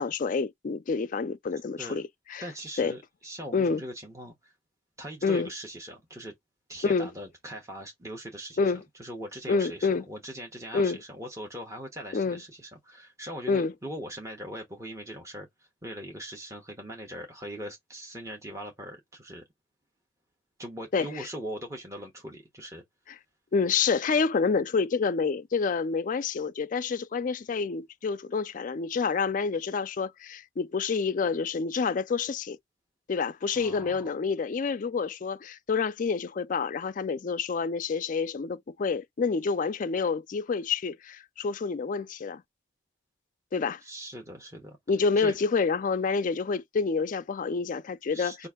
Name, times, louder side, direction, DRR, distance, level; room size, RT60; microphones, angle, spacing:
voice 1, 0.0-2.4 2.8-2.9 3.5-3.8 5.2-5.5 6.8-7.1 8.6-8.8 9.5-10.0 10.7-11.0 12.1-12.4 13.5-13.7 20.9-21.3 23.5-32.6 33.1-42.4 43.5-43.8 44.9-48.3, left 5 dB, 40° left, 0.3 m, -28 dB
voice 2, 2.4-4.5 5.0-6.3 6.7-8.6 8.9-19.4 20.6-22.8 33.5-34.1 43.8-44.8 45.2-45.4 48.1-48.5, equal, 15° right, 0.9 m, -41 dB
5.3 x 2.5 x 3.5 m
head